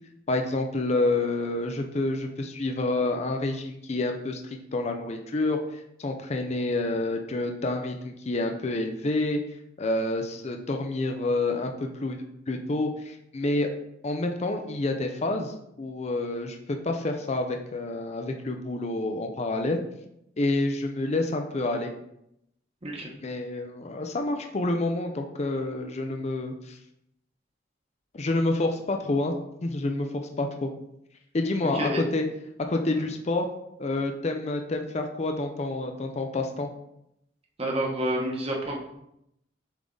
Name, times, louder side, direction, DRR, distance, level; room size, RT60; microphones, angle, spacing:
voice 1, 0.3-9.4 9.8-12.2 12.5-13.7 14.0-19.8 20.4-21.9 23.2-26.8 28.1-29.3 29.6-30.7 31.3-32.3 32.7-33.5 33.8-36.7, left 2 dB, 35° left, 4 dB, 0.5 m, -28 dB
voice 2, 31.6-32.0 32.9-33.0 37.6-38.8, right 1 dB, 35° right, -1 dB, 1.2 m, -29 dB
7.3 x 3.6 x 3.8 m, 0.80 s
head